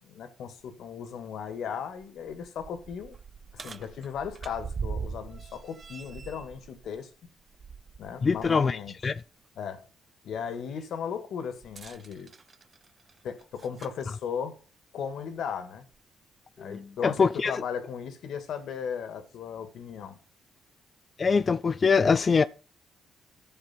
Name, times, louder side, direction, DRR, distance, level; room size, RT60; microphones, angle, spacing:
voice 1, 0.0-3.2 3.5-7.1 8.0-8.9 9.6-9.8 10.2-12.3 13.2-14.5 14.9-15.8 16.6-20.2, left 7 dB, 70° left, 1.9 m, -36 dB
sound 1, 0.6-0.7 1.2-1.3 1.9-8.6 9.0-9.2 11.6-14.0 15.0-15.1 15.9-16.0, right 5 dB, 35° right, 0.5 m, -42 dB
voice 2, 8.2-9.2 16.6-17.6 21.2-22.4, left 5 dB, 35° left, 0.4 m, -24 dB
13.0 x 6.8 x 4.4 m
cardioid pair, 90°, 0 cm